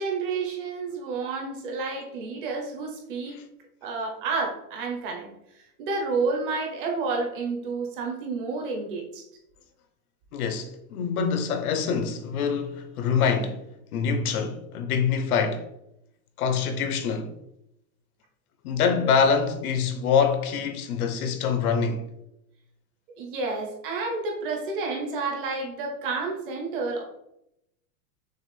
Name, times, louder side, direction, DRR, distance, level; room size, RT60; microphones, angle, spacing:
voice 1, 0.0-3.4 3.8-5.3 5.8-9.2 23.2-27.0, right 4 dB, 35° right, 0.9 m, -30 dB
voice 2, 10.3-13.6 13.9-15.7 16.4-17.3 18.6-22.1, left 6 dB, 75° left, 0.8 m, -25 dB
6.4 x 2.5 x 3.3 m
supercardioid pair, 180°, 44 cm